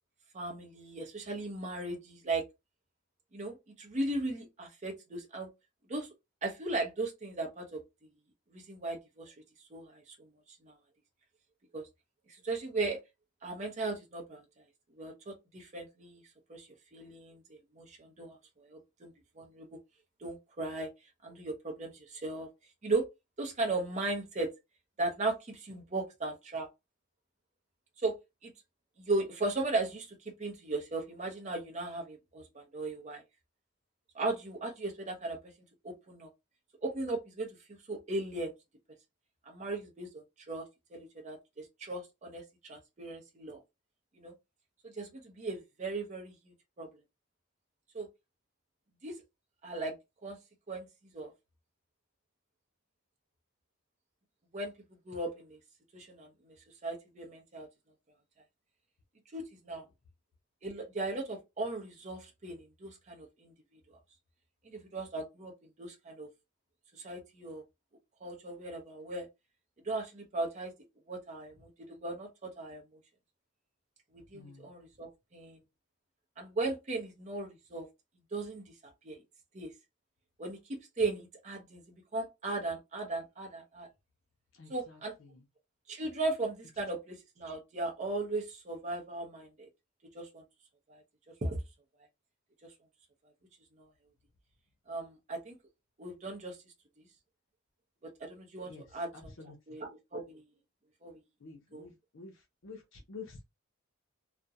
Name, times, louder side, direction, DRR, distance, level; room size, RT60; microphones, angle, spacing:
voice 1, 0.3-2.4 3.3-5.5 5.9-6.1 6.4-7.8 8.5-9.3 9.7-10.1 10.6-10.7 11.7-11.9 12.4-13.0 13.4-14.4 15.0-16.2 16.5-19.8 20.2-20.9 21.2-22.5 22.8-23.1 23.4-24.5 25.0-26.7 28.0-28.2 28.4-28.5 29.0-33.2 34.1-35.4 35.8-36.3 36.8-37.6 37.9-38.5 39.5-43.6 44.2-44.3 44.8-46.3 46.8-46.9 47.9-48.1 49.0-49.2 49.6-50.0 50.2-50.4 50.7-50.9 51.1-51.3 54.5-54.7 55.1-55.6 55.9-56.5 56.8-57.7 59.3-59.8 60.6-63.5 63.9-64.0 64.6-65.5 65.8-66.3 67.0-67.6 68.2-69.3 69.8-70.7 71.1-72.8 74.1-75.6 76.4-77.9 78.3-79.2 79.5-79.7 80.4-81.8 82.1-83.9 84.7-85.1 85.9-89.7 90.1-90.4 90.9-91.0 91.4-91.6 92.6-92.7 93.8-93.9 94.9-95.6 96.0-96.6 98.2-99.3 99.7-100.4 101.0-101.1 101.7-101.9, right 2 dB, 35° right, 0.6 m, -37 dB
voice 2, 74.3-74.7 84.6-85.0 85.3-85.4 98.6-98.8 99.1-99.6 101.4-102.3 102.6-103.4, left 4 dB, 70° left, 0.6 m, -49 dB
2.4 x 2.1 x 2.6 m
head